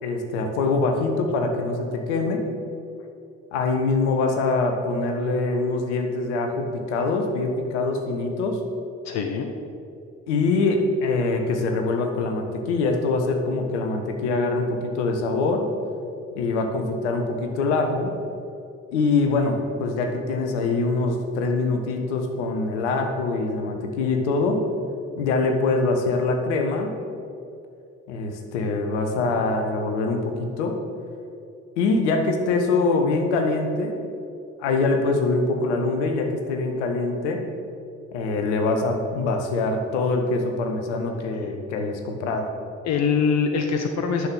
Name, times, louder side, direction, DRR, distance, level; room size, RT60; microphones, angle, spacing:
voice 1, 0.0-2.4 3.5-8.6 10.3-15.6 16.3-18.1 18.9-24.6 25.2-27.0 28.1-30.8 31.8-33.9 34.6-37.4 38.1-42.5, left 3 dB, 70° left, 4 dB, 1.3 m, -24 dB
voice 2, 9.0-9.5 42.8-44.3, left 6 dB, 45° left, 5 dB, 0.9 m, -23 dB
10.0 x 6.4 x 7.2 m, 2.6 s
figure-of-eight pair, 50°, 37 cm